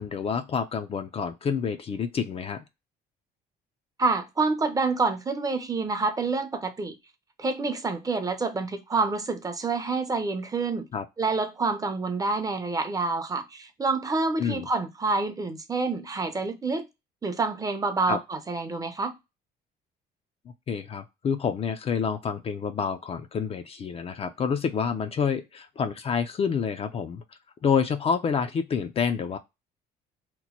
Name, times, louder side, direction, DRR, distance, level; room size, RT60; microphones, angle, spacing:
voice 1, 0.0-2.7 10.9-11.0 14.4-14.7 18.1-18.2 20.7-27.2 27.6-29.4, left 6 dB, 35° left, 0.4 m, -28 dB
voice 2, 4.0-6.9 7.4-10.9 11.2-16.9 17.2-19.2, right 3 dB, 20° right, 0.6 m, -27 dB
3.0 x 2.1 x 4.1 m
cardioid pair, 110°, 17 cm